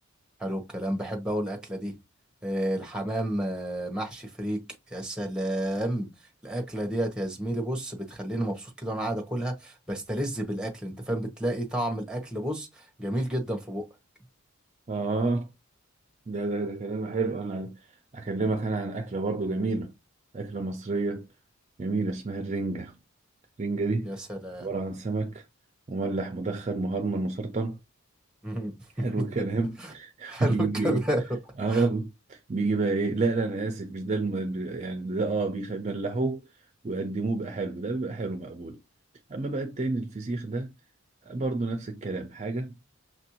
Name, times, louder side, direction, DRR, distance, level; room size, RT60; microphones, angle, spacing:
voice 1, 0.4-1.9 2.4-6.1 6.4-13.8 24.0-24.7 28.4-29.3 29.8-29.9 30.3-31.2 31.7-31.9, right 1 dB, 5° right, 0.8 m, -31 dB
voice 2, 14.9-15.5 16.3-17.8 18.1-19.9 20.3-21.3 21.8-23.0 23.6-24.1 24.6-25.4 25.9-27.8 29.0-31.0 31.6-36.4 36.8-38.8 39.3-40.7 41.3-42.7, right 3 dB, 30° right, 0.4 m, -29 dB
6.0 x 2.5 x 2.8 m
head